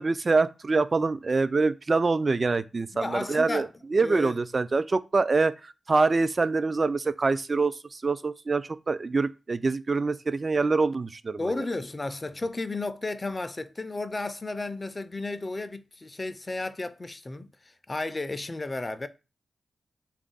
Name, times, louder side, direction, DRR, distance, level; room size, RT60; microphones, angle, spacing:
voice 1, 0.0-11.4, right 3 dB, 45° right, 0.3 m, -25 dB
voice 2, 2.9-3.7 4.0-4.4 11.4-19.1, left 2 dB, 35° left, 0.4 m, -33 dB
3.4 x 2.4 x 3.8 m
cardioid pair, 50°, 0 cm